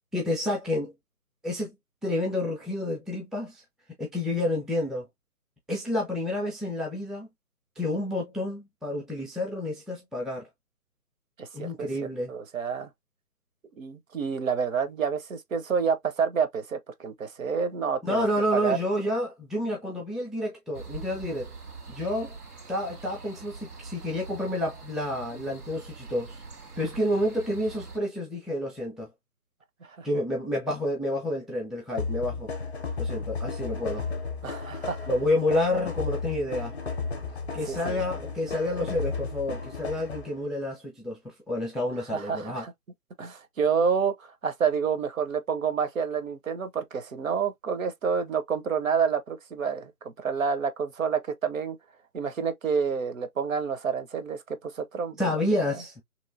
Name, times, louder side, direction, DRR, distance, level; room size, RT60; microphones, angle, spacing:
voice 1, 0.1-0.9 1.4-1.7 2.0-3.6 4.0-5.1 5.7-7.3 7.8-10.5 11.5-12.3 18.0-21.5 21.9-22.3 22.7-26.4 26.8-29.1 30.0-32.5 33.0-34.1 35.1-36.7 37.5-42.6 55.2-55.9, left 1 dB, ahead, 0.4 m, -29 dB
voice 2, 11.4-12.9 13.8-18.3 18.5-18.8 29.9-30.1 34.4-35.1 37.6-38.0 42.1-42.7 43.2-51.8 52.1-55.3 55.7-55.8, right 6 dB, 60° right, 0.7 m, -29 dB
sound 1, 20.7-28.0, right 4 dB, 90° right, 1.6 m, -43 dB
sound 2, 32.0-40.4, left 4 dB, 45° left, 0.6 m, -34 dB
3.0 x 2.6 x 2.4 m
hypercardioid pair, 160°, 45 cm